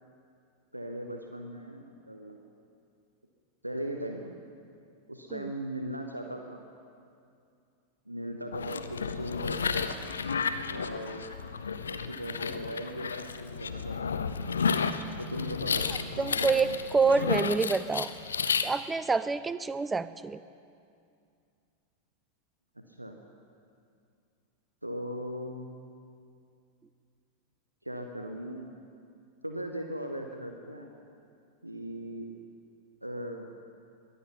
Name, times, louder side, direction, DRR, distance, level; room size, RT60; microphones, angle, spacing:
voice 1, 0.7-2.4 3.6-4.3 5.1-6.6 8.1-9.9 10.7-11.3 11.9-14.1 15.2-15.8 16.2-16.7 23.0-23.2 24.8-25.7 27.8-28.7 29.4-30.9 31.6-32.3 33.0-33.5, equal, 85° right, 4 dB, 0.9 m, -38 dB
sound 1, 8.5-18.7, left 5 dB, 70° left, 0.6 m, -32 dB
voice 2, 16.2-18.1 18.6-20.4, right 4 dB, 10° right, 15 dB, 0.4 m, -27 dB
22.0 x 8.5 x 5.7 m, 2.4 s
figure-of-eight pair, 90°, 0 cm